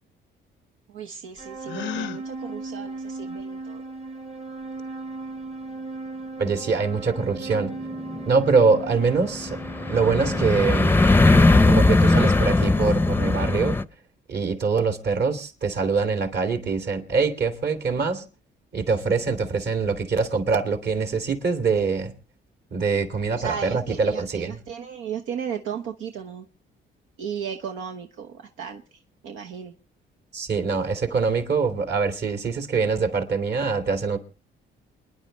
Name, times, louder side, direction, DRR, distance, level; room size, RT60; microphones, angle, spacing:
voice 1, 0.9-3.8 23.4-26.5 27.2-29.7, right 8 dB, 85° right, 1.1 m, -35 dB
sound 1, 1.4-10.5, right 3 dB, 35° right, 1.3 m, -36 dB
Gasp, 1.6-2.2, left 9 dB, 70° left, 0.6 m, -32 dB
voice 2, 6.4-7.7 8.3-9.6 9.9-11.0 11.6-13.8 14.3-18.2 18.7-22.1 22.7-24.6 30.3-34.2, right 4 dB, 55° right, 2.7 m, -24 dB
sound 2, 7.5-13.8, left 2 dB, 10° left, 0.6 m, -19 dB
28.0 x 10.5 x 3.3 m
cardioid pair, 90°, 20 cm